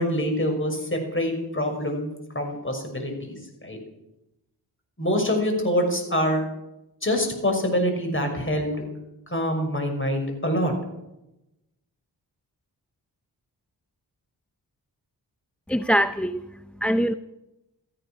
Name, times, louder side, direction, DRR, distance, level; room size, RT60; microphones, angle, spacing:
voice 1, 0.0-2.1 2.3-3.8 5.0-6.4 7.0-8.8 9.3-10.7, equal, 30° left, 4 dB, 6.0 m, -25 dB
voice 2, 15.7-17.1, equal, 5° left, 11 dB, 0.6 m, -24 dB
17.0 x 13.5 x 6.1 m, 0.92 s
cardioid pair, 55°, 41 cm